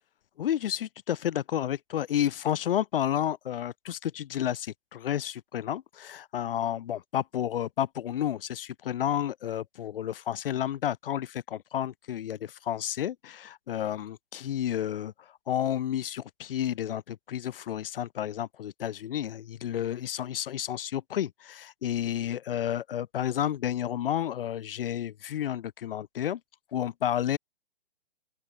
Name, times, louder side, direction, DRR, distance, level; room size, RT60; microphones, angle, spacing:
voice 1, 0.4-26.4 26.7-27.4, left 11 dB, 60° left, 0.6 m, -31 dB
open air
figure-of-eight pair, 125°, 31 cm